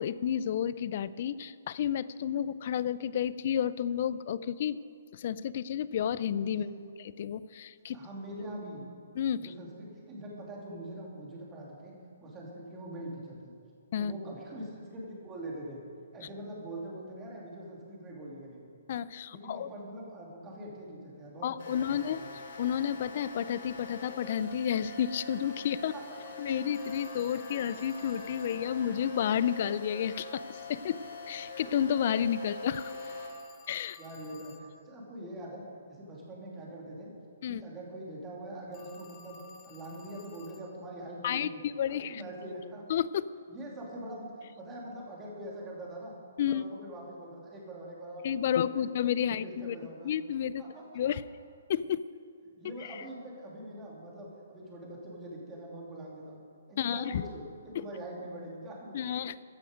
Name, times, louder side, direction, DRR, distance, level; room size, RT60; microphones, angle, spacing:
voice 1, 0.0-4.8 5.1-6.7 7.2-8.0 9.2-9.5 13.9-14.1 18.9-19.7 21.4-22.2 22.6-25.9 26.4-33.1 33.7-34.0 37.4-37.6 41.2-42.2 42.9-43.1 46.4-46.7 48.2-49.8 50.0-50.6 50.9-51.2 51.7-52.0 52.8-53.0 56.8-57.2 57.7-57.8 58.9-59.4, left 9 dB, 45° left, 17 dB, 0.4 m, -31 dB
voice 2, 6.5-6.8 7.9-8.9 9.3-13.5 14.0-15.8 16.1-18.6 19.3-22.3 25.9-26.0 34.0-37.1 37.5-41.6 41.9-42.8 43.5-46.1 46.4-48.9 49.2-50.1 50.6-50.9 52.6-56.4 56.7-59.2, right 1 dB, 15° right, -3 dB, 2.6 m, -43 dB
sound 1, 21.6-33.3, left 2 dB, 60° left, 3.3 m, -43 dB
Telephone, 26.7-28.7 32.7-34.7 38.7-40.7, left 4 dB, 20° left, 0.8 m, -54 dB
14.5 x 10.5 x 5.1 m, 2.2 s
hypercardioid pair, 160°, 0 cm